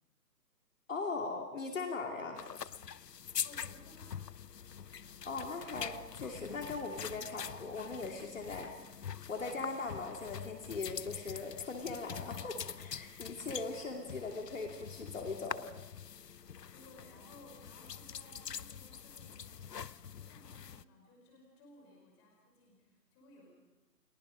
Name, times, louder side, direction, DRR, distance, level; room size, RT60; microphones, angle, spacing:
voice 1, 0.9-2.4 5.2-8.7 9.3-15.7, left 3 dB, 50° left, 2 dB, 2.7 m, -40 dB
sound 1, 2.4-20.8, left 8 dB, 75° left, 0.8 m, -45 dB
voice 2, 3.4-4.3 16.7-19.7 20.0-23.5, left 1 dB, 15° left, 1 dB, 5.0 m, -59 dB
30.0 x 20.0 x 5.2 m, 1.1 s
figure-of-eight pair, 160°, 49 cm